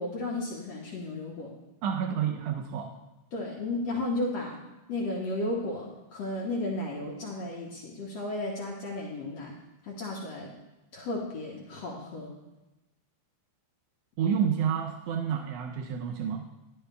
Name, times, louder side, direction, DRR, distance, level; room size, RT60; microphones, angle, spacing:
voice 1, 0.0-1.5 3.3-4.6 4.9-9.5 9.8-10.5 10.9-12.3, left 2 dB, 60° left, -3 dB, 2.4 m, -34 dB
voice 2, 1.8-2.9 14.2-16.4, right 8 dB, 75° right, 3 dB, 1.6 m, -29 dB
11.5 x 11.0 x 3.4 m, 1.0 s
omnidirectional pair, 3.5 m